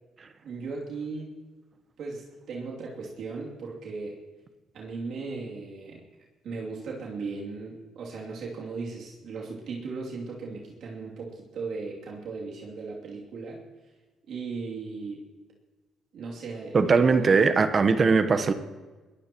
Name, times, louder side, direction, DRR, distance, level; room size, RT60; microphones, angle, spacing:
voice 1, 0.4-1.3 2.0-4.2 4.7-6.0 6.4-13.6 14.3-15.2 16.1-17.3, right 4 dB, 65° right, 2.8 m, -37 dB
voice 2, 16.7-18.5, right 4 dB, 35° right, 1.0 m, -20 dB
22.0 x 16.5 x 3.0 m
cardioid pair, 100°, 0 cm